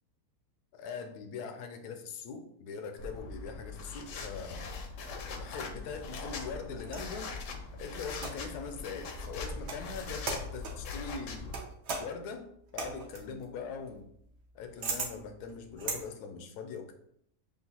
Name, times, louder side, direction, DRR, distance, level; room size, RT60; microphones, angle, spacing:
voice 1, 0.7-4.7 5.3-7.3 7.8-11.5 12.0-12.5 12.7-14.0 14.5-16.9, left 5 dB, 85° left, 6 dB, 1.2 m, -41 dB
sound 1, 3.0-11.6, left 4 dB, 65° left, 0.9 m, -41 dB
sound 2, 5.8-7.2 8.1-8.6 9.5-9.9 10.2-10.9 11.5-16.0, right 4 dB, 55° right, 0.9 m, -39 dB
6.7 x 2.4 x 2.8 m, 0.73 s
omnidirectional pair, 1.6 m